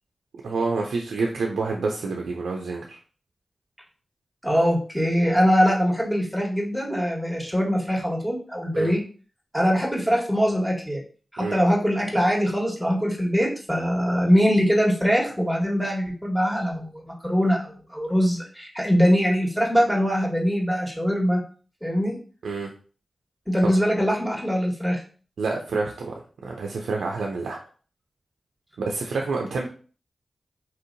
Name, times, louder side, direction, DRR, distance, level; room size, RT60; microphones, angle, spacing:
voice 1, 0.4-3.0 8.7-8.9 11.4-11.6 22.4-22.7 25.4-26.1 26.4-27.6 28.8-29.7, right 3 dB, 90° right, 1 dB, 0.4 m, -28 dB
voice 2, 4.4-9.0 9.5-11.0 11.3-21.4 21.8-22.1 23.5-25.0, equal, ahead, -1 dB, 1.4 m, -22 dB
4.2 x 2.7 x 2.6 m, 0.40 s
cardioid pair, 40°, 0 cm